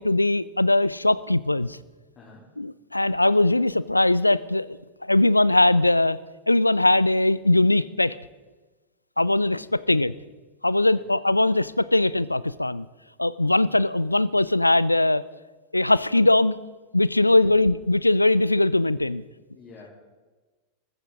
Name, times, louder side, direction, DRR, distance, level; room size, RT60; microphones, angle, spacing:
voice 1, 0.0-1.8 2.6-6.2 6.5-8.2 9.2-10.1 10.6-12.9 13.2-15.2 15.7-16.6 16.9-19.2, left 2 dB, 85° left, 20 dB, 0.5 m, -21 dB
voice 2, 2.2-2.5 9.7-9.9 10.8-11.1 17.2-17.5 19.5-19.9, left 4 dB, 30° left, -4 dB, 3.8 m, -49 dB
23.0 x 15.0 x 3.9 m, 1.3 s
figure-of-eight pair, 90°, 0 cm